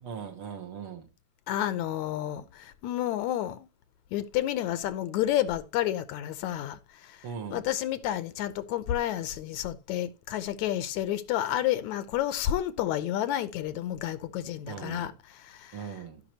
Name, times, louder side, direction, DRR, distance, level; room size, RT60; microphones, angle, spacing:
voice 1, 0.0-1.1 7.2-7.7 14.7-15.1 15.7-16.2, right 6 dB, 55° right, 1.8 m, -39 dB
voice 2, 1.5-3.7 4.1-7.1 7.5-15.1 15.4-15.8, left 12 dB, 80° left, 2.1 m, -30 dB
15.0 x 5.8 x 3.0 m
omnidirectional pair, 3.4 m